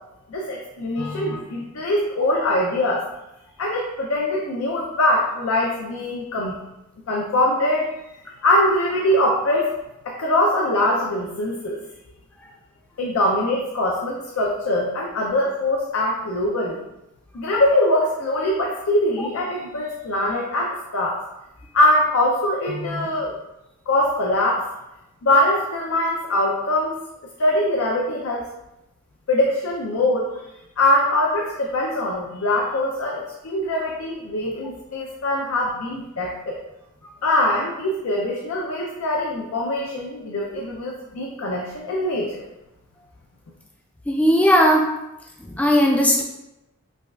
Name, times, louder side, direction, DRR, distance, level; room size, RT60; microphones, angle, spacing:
voice 1, 0.3-3.1 3.6-6.6 7.1-7.9 8.4-9.8 10.1-11.8 13.0-16.8 17.3-21.2 21.7-23.4 23.9-24.7 25.2-27.0 27.4-28.4 29.3-30.3 30.8-36.6 37.2-42.5, left 1 dB, 75° left, -1 dB, 0.5 m, -22 dB
voice 2, 44.1-44.9 45.5-46.2, equal, 5° left, 0 dB, 0.3 m, -17 dB
4.8 x 2.3 x 2.3 m, 0.93 s
head